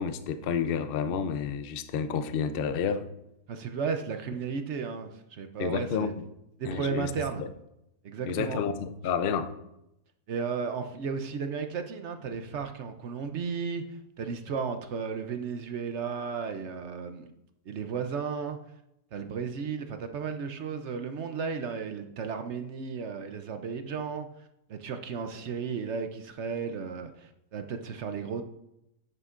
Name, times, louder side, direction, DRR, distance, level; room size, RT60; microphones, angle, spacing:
voice 1, 0.0-3.1 5.6-6.1 6.7-7.1 7.4-7.5 8.3-9.5, left 6 dB, 55° left, 11 dB, 0.6 m, -30 dB
voice 2, 3.5-6.1 6.6-7.4 8.0-8.6 10.3-13.8 14.2-17.3 17.7-18.6 19.1-24.3 24.7-28.4, right 6 dB, 60° right, 7 dB, 0.8 m, -34 dB
9.7 x 9.5 x 2.5 m, 0.83 s
omnidirectional pair, 1.6 m